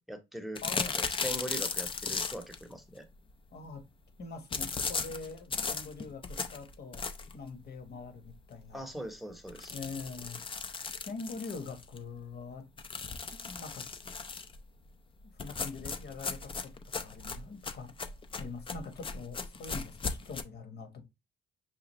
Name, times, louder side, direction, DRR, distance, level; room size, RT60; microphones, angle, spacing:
voice 1, 0.0-0.6 0.9-3.0 8.7-9.7, right 1 dB, ahead, 0.9 m, -41 dB
sound 1, 0.5-2.6 4.5-7.4 7.9-8.0 8.3-8.4 8.7-8.8 9.5-12.0 12.8-14.6 15.4-20.4, left 4 dB, 25° left, 0.5 m, -36 dB
voice 2, 0.6-1.0 3.5-3.8 4.2-7.0 7.3-8.8 9.7-12.6 13.3-13.9 15.4-16.7 17.0-18.1 18.4-21.0, left 4 dB, 55° left, 1.2 m, -44 dB
5.9 x 2.4 x 3.0 m
cardioid pair, 90°, 20 cm